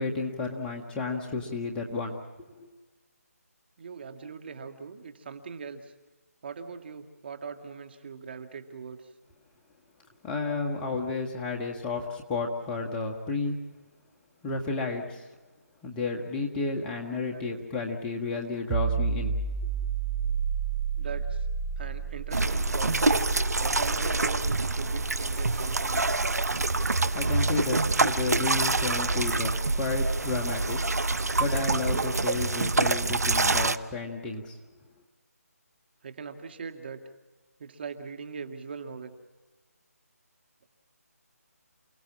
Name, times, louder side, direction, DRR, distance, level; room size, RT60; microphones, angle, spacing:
voice 1, 0.0-2.2 2.6-2.7 10.2-13.6 14.4-15.3 15.8-19.4 27.1-30.8 31.4-34.6, left 3 dB, 10° left, 0 dB, 1.6 m, -32 dB
voice 2, 3.8-5.9 6.4-9.1 17.0-17.6 18.5-18.7 20.9-21.5 21.8-23.1 23.6-24.4 24.8-26.2 36.0-37.0 37.6-39.2, right 5 dB, 40° right, 7 dB, 1.9 m, -41 dB
sound 1, 18.7-30.1, right 6 dB, 15° right, 0.9 m, -33 dB
sound 2, 22.3-33.8, right 3 dB, 75° right, 1.1 m, -26 dB
29.0 x 18.0 x 7.4 m, 1.2 s
figure-of-eight pair, 160°, 9 cm